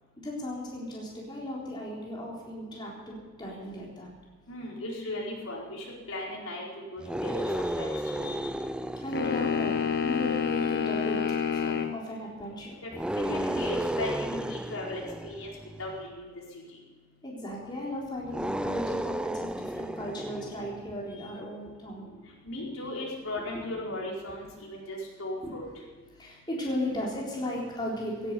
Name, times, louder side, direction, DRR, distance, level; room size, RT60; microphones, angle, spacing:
voice 1, 0.2-4.1 7.4-8.6 9.0-11.2 11.6-12.8 17.2-22.2 23.5-23.7 25.4-25.5 26.2-28.3, left 1 dB, 20° left, -4 dB, 3.9 m, -36 dB
voice 2, 4.5-8.3 13.1-15.5 15.8-16.3 22.4-25.6, left 1 dB, 80° left, -3 dB, 4.6 m, -37 dB
sound 1, 7.0-10.6 12.9-16.0 18.2-21.0, right 1 dB, 5° right, 0.4 m, -33 dB
sound 2, 9.1-12.0, left 6 dB, 50° left, 1.2 m, -28 dB
17.0 x 10.5 x 6.9 m, 1.4 s
head